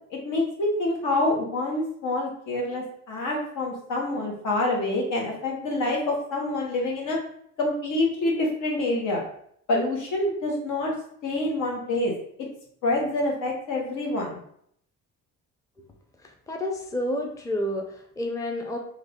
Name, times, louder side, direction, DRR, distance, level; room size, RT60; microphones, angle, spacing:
voice 1, 0.1-7.2 7.6-9.2 9.7-10.9 11.2-12.1 12.8-14.4, left 2 dB, 85° left, -1 dB, 1.0 m, -26 dB
voice 2, 16.2-18.8, left 1 dB, 10° left, 3 dB, 0.5 m, -30 dB
3.2 x 2.3 x 3.5 m, 0.67 s
cardioid pair, 90°, 30 cm